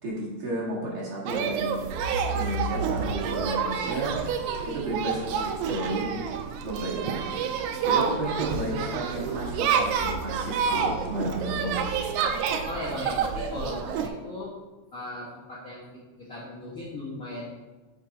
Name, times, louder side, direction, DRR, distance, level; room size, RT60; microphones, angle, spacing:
voice 1, 0.0-1.8 2.3-4.2 4.7-6.3 6.6-7.3 7.8-11.7, right 1 dB, 50° right, -5 dB, 2.4 m, -32 dB
sound 1, 1.3-14.1, right 6 dB, 85° right, 2.0 m, -28 dB
voice 2, 10.6-11.5 12.6-14.5 14.9-17.5, left 1 dB, 40° left, -6 dB, 1.3 m, -37 dB
8.9 x 5.4 x 4.0 m, 1.2 s
omnidirectional pair, 3.4 m